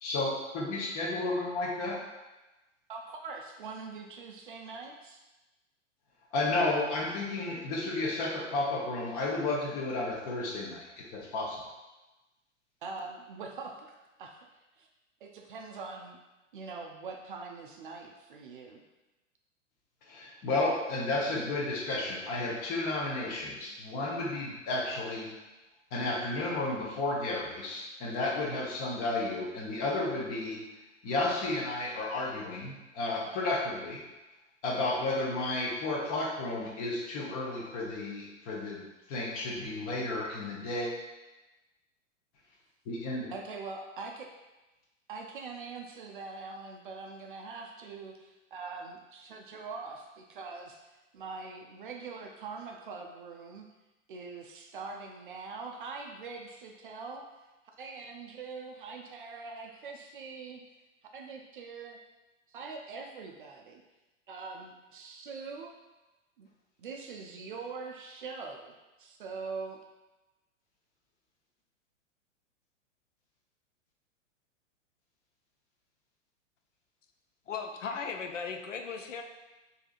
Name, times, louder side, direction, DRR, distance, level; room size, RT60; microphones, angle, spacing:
voice 1, 0.0-2.0 6.3-11.6 20.1-25.3 25.9-30.6 31.0-34.0 34.6-38.8 39.1-40.9 42.9-43.3, left 2 dB, 25° left, -3 dB, 0.7 m, -32 dB
voice 2, 2.9-5.2 12.8-13.9 14.2-14.4 14.8-14.9 15.2-16.2 16.5-18.8 43.3-44.3 45.1-53.7 54.1-57.3 57.8-60.6 61.1-62.0 62.5-63.8 64.3-65.7 66.4-66.5 66.8-68.7 69.0-69.8, right 4 dB, 45° right, 2 dB, 0.4 m, -43 dB
voice 3, 77.5-79.2, left 5 dB, 70° left, 5 dB, 0.5 m, -37 dB
4.6 x 2.7 x 2.4 m, 1.1 s
figure-of-eight pair, 105°, 38 cm